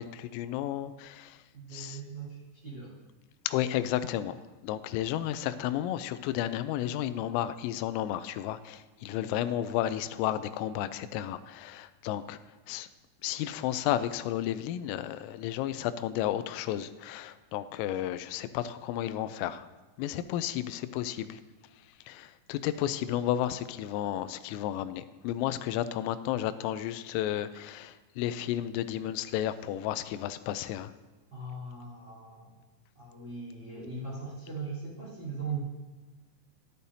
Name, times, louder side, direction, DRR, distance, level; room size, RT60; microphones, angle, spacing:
voice 1, 0.0-1.4 1.7-2.0 3.5-4.4 4.6-12.4 12.7-12.9 13.2-19.7 20.0-21.4 22.1-30.9, left 12 dB, 90° left, 11 dB, 3.2 m, -32 dB
voice 2, 1.5-2.9 9.1-9.2 31.3-32.5 32.9-35.6, right 4 dB, 25° right, -6 dB, 3.8 m, -39 dB
14.5 x 12.0 x 2.7 m, 1.2 s
omnidirectional pair, 5.8 m